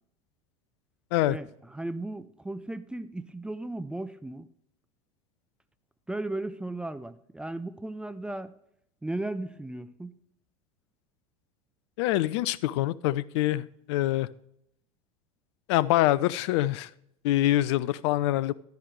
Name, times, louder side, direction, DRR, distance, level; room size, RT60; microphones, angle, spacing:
voice 1, 1.3-4.5 6.1-8.5 9.0-10.2, right 2 dB, 5° right, 0.5 m, -36 dB
voice 2, 12.0-14.3 15.7-16.9 17.2-18.5, left 15 dB, 50° left, 0.5 m, -25 dB
11.5 x 10.5 x 3.1 m
figure-of-eight pair, 80°, 18 cm